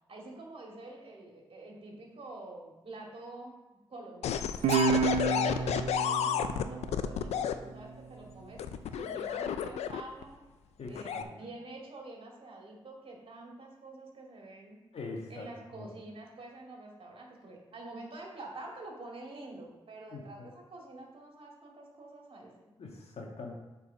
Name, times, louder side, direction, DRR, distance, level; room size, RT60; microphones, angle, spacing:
voice 1, 0.1-3.5 3.9-4.8 5.1-8.6 8.9-10.4 10.9-14.8 15.3-22.5, right 2 dB, 60° right, -2 dB, 2.5 m, -47 dB
sound 1, 4.2-7.6 8.6-10.2 10.9-11.2, left 8 dB, 90° left, 0.4 m, -31 dB
Guitar, 4.6-7.9, right 5 dB, 80° right, 0.6 m, -30 dB
voice 2, 10.8-11.2 14.9-15.5 15.8-15.9 20.1-20.5 22.8-23.5, left 3 dB, 70° left, 0 dB, 1.7 m, -42 dB
7.3 x 4.6 x 6.3 m, 1.1 s
cardioid pair, 50°, 11 cm